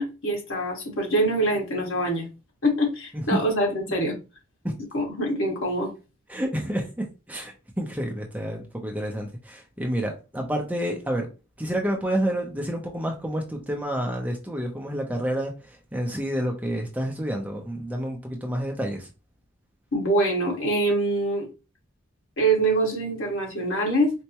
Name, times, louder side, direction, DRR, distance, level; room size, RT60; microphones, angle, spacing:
voice 1, 0.0-2.3 2.6-4.1 4.9-5.9 19.9-21.5 22.4-24.1, right 1 dB, 80° left, 1.6 m, -24 dB
voice 2, 6.3-11.3 11.6-19.1, equal, 5° right, 0.5 m, -29 dB
4.5 x 2.1 x 2.8 m
head